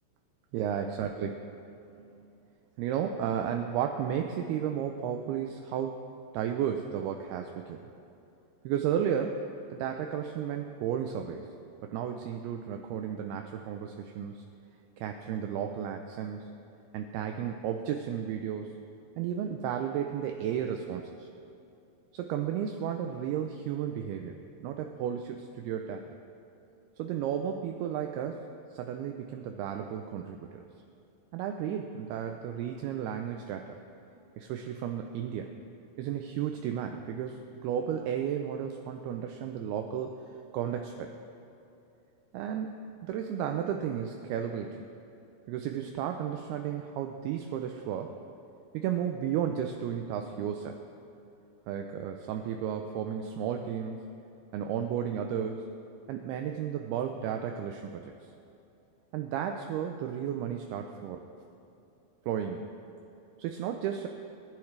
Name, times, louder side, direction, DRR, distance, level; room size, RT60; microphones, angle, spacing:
voice 1, 0.5-1.4 2.8-6.0 6.3-7.8 8.6-9.4 9.7-11.5 11.8-14.4 15.0-16.6 16.9-18.8 19.2-21.3 22.1-24.4 24.6-26.0 27.0-28.4 28.7-30.6 31.3-33.7 34.4-35.5 36.0-40.2 40.5-41.1 42.3-42.7 43.0-44.8 45.5-48.1 48.7-50.8 51.7-54.0 54.5-55.7 56.1-58.0 59.1-61.2 62.3-62.6 63.4-64.1, right 9 dB, 80° right, 4 dB, 2.4 m, -33 dB
25.0 x 10.5 x 3.3 m, 2.7 s
omnidirectional pair, 4.9 m